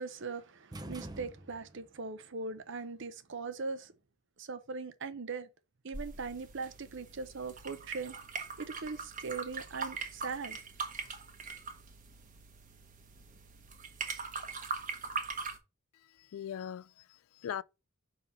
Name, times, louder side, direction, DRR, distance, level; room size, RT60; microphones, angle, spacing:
voice 1, 0.0-3.9 4.4-5.5 5.8-8.2 8.6-10.6, right 4 dB, 55° right, 0.7 m, -40 dB
sound 1, 0.7-1.9, right 1 dB, 20° right, 0.5 m, -45 dB
sound 2, 5.9-15.6, right 5 dB, 35° right, 1.1 m, -41 dB
voice 2, 15.9-17.6, left 9 dB, 70° left, 0.3 m, -41 dB
5.6 x 3.8 x 5.7 m
head